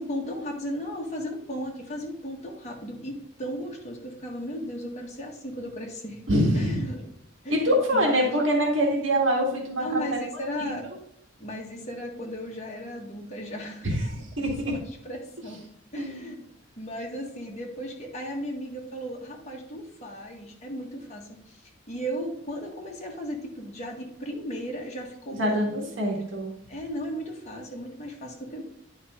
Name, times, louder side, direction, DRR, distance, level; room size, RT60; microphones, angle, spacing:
voice 1, 0.0-6.2 6.5-7.1 7.4-8.4 9.8-10.9 11.4-14.2 14.6-15.6 15.9-16.4 16.8-25.7 26.7-28.6, equal, 35° left, 0 dB, 1.7 m, -36 dB
voice 2, 6.3-6.8 7.5-10.2 13.8-14.7 16.0-16.3 25.4-26.5, equal, 75° right, -1 dB, 2.0 m, -25 dB
10.0 x 5.3 x 3.7 m, 0.75 s
head